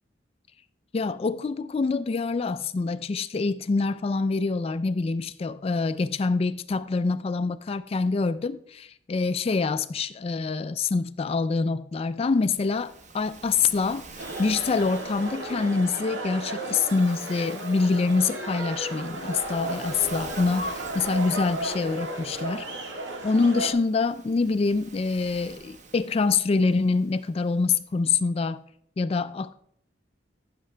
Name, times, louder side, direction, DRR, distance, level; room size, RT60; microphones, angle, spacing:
voice 1, 0.9-14.1 14.4-22.7 23.2-28.6 29.0-29.5, left 4 dB, 30° left, 0.3 m, -25 dB
Waves surf, 12.4-27.9, right 4 dB, 40° right, 0.9 m, -48 dB
sound 1, 14.2-23.7, right 1 dB, 70° right, 1.7 m, -34 dB
15.0 x 6.7 x 3.3 m
head